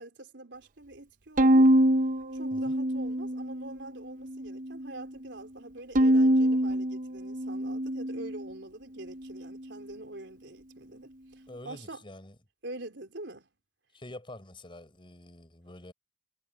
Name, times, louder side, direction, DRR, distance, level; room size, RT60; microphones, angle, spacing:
voice 1, 0.0-1.7 2.3-12.0 12.6-13.5, right 2 dB, 70° right, 4.2 m, -45 dB
Bowed string instrument, 1.4-3.7 4.2-5.0 6.0-8.5, right 1 dB, 45° right, 0.8 m, -25 dB
voice 2, 11.5-12.4 13.9-15.9, left 1 dB, 30° left, 5.7 m, -47 dB
head